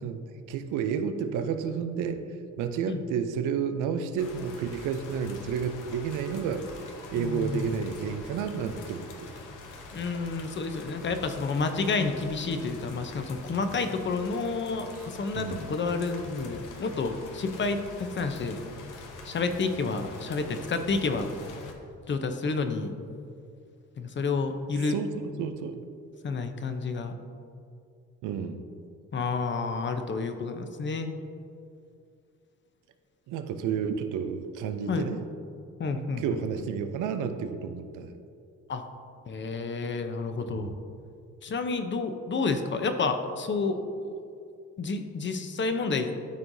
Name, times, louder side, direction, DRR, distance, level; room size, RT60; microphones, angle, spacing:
voice 1, 0.0-2.2 2.6-6.6 7.1-9.3 15.3-15.6 24.9-25.8 28.2-28.6 33.3-35.2 35.9-38.1 40.5-40.6, right 7 dB, 90° right, 9 dB, 0.6 m, -31 dB
sound 1, 4.2-21.7, left 3 dB, 90° left, 0.9 m, -45 dB
voice 2, 7.2-7.7 9.9-18.6 19.2-21.3 22.1-22.9 24.0-25.0 26.2-27.1 29.1-31.1 34.9-35.1 35.8-36.2 36.5-36.6 38.7-38.8 39.3-40.7 41.4-44.1 44.8-46.1, left 4 dB, 40° left, 7 dB, 0.7 m, -30 dB
12.5 x 4.6 x 2.7 m, 2.4 s
cardioid pair, 90°, 30 cm